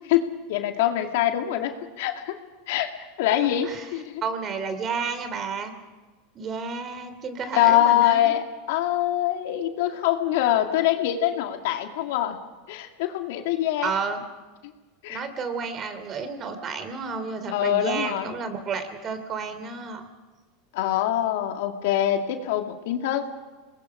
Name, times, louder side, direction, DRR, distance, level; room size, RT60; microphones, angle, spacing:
voice 1, 0.5-2.3 2.7-2.9 3.2-4.2 7.5-12.4 12.7-13.9 15.0-15.2 17.5-18.4 20.7-23.2, left 12 dB, 70° left, 5 dB, 2.0 m, -24 dB
voice 2, 4.2-5.7 6.3-8.3 13.8-14.2 15.1-20.0, right 5 dB, 35° right, 9 dB, 3.0 m, -31 dB
26.5 x 20.5 x 5.0 m, 1.3 s
hypercardioid pair, 105°, 0 cm